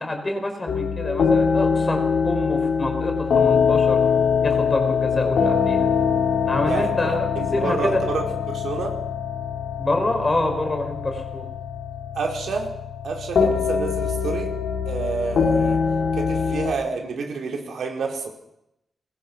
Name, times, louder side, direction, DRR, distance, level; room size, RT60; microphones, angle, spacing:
voice 1, 0.0-4.0 4.4-5.9 6.4-8.0 9.8-11.5, left 2 dB, 20° left, 4 dB, 5.0 m, -26 dB
sound 1, 0.7-16.7, left 6 dB, 90° left, 4.3 m, -23 dB
voice 2, 6.6-8.9 12.1-12.7 13.0-14.5 14.9-15.8 16.1-18.3, right 4 dB, 85° right, 1 dB, 4.7 m, -29 dB
23.5 x 21.0 x 6.2 m, 0.81 s
wide cardioid pair, 180°, 0 cm